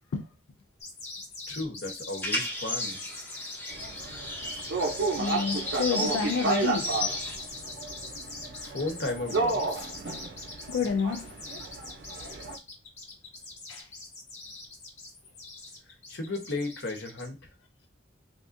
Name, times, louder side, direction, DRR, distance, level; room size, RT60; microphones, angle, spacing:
sound 1, 0.8-17.3, left 3 dB, 35° left, 1.0 m, -43 dB
voice 1, 1.5-3.0 7.3-7.6 8.6-9.9 16.1-17.4, left 2 dB, 60° left, 0.9 m, -34 dB
sound 2, 2.2-7.4, left 2 dB, 10° left, 0.6 m, -34 dB
sound 3, 3.7-12.6, right 3 dB, 65° right, 0.5 m, -32 dB
voice 2, 5.2-7.0 10.7-11.4 13.7-13.9, left 5 dB, 90° left, 0.4 m, -29 dB
3.5 x 2.4 x 2.5 m
head